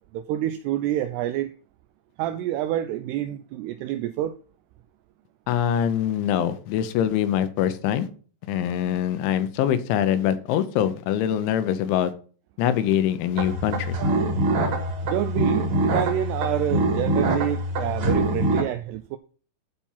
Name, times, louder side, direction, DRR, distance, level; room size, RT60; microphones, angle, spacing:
voice 1, 0.1-1.5 2.2-4.4 15.0-19.2, right 12 dB, 85° right, 2.3 m, -27 dB
voice 2, 5.5-8.1 8.5-12.1 12.6-14.0, left 10 dB, 85° left, 3.2 m, -24 dB
sound 1, 13.4-18.6, right 1 dB, 50° right, 2.5 m, -24 dB
12.0 x 4.4 x 5.5 m
omnidirectional pair, 5.3 m